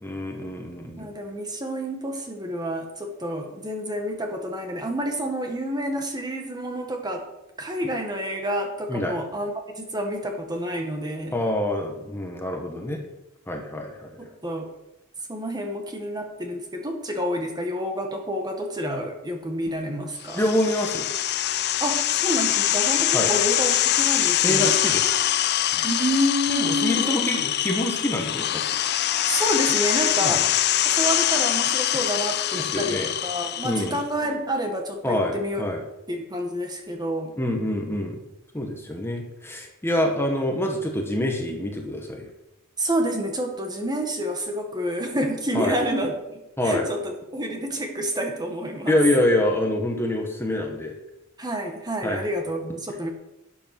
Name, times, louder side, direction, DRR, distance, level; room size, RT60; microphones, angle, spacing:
voice 1, 0.0-1.1 8.9-9.1 11.3-13.0 13.5-14.1 20.3-21.1 23.1-23.3 24.4-25.1 25.7-25.9 26.5-28.8 30.2-30.4 32.5-33.1 33.6-34.0 35.0-35.8 37.4-38.2 38.5-42.3 45.5-45.8 46.6-46.9 48.9-50.9 52.0-52.2, left 1 dB, 10° left, 2 dB, 1.5 m, -26 dB
voice 2, 1.0-7.2 7.6-11.4 14.2-14.7 15.3-20.4 21.8-24.8 25.8-27.4 29.3-30.4 30.8-35.6 36.1-37.3 42.8-48.9 51.4-53.1, equal, 20° right, 3 dB, 1.7 m, -29 dB
sound 1, 20.2-34.0, left 12 dB, 55° left, 0.5 m, -24 dB
12.0 x 8.3 x 6.1 m, 0.91 s
head